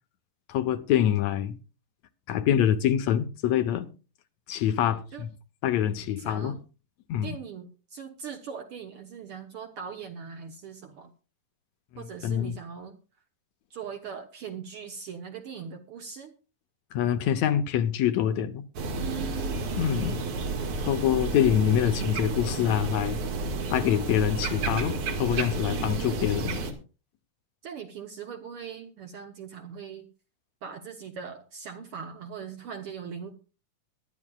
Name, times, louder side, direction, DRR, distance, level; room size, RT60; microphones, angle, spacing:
voice 1, 0.5-1.6 2.3-3.9 4.5-5.3 5.6-6.5 7.1-7.4 12.2-12.6 16.9-18.6 19.8-20.2 20.8-23.2 23.7-26.6, left 10 dB, 75° left, 1.9 m, -25 dB
voice 2, 6.2-6.6 7.2-11.1 12.0-13.0 13.7-16.3 19.0-20.5 25.7-26.4 27.6-30.1 30.6-33.3, right 7 dB, 65° right, 1.5 m, -40 dB
sound 1, 18.8-26.7, right 3 dB, 85° right, 3.1 m, -31 dB
22.0 x 11.0 x 2.3 m
omnidirectional pair, 3.5 m